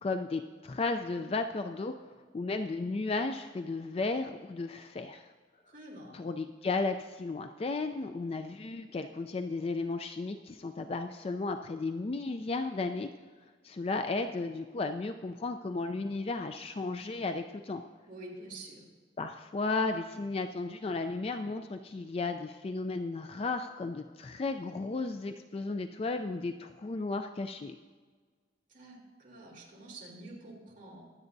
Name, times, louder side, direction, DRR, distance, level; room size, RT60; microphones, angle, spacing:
voice 1, 0.0-5.3 6.1-13.1 13.6-17.8 19.2-27.8, left 3 dB, 35° left, 7 dB, 0.4 m, -34 dB
voice 2, 5.7-6.2 18.1-18.8 28.7-31.0, right 2 dB, 45° right, -4 dB, 3.1 m, -47 dB
23.0 x 8.1 x 2.6 m, 1.5 s
head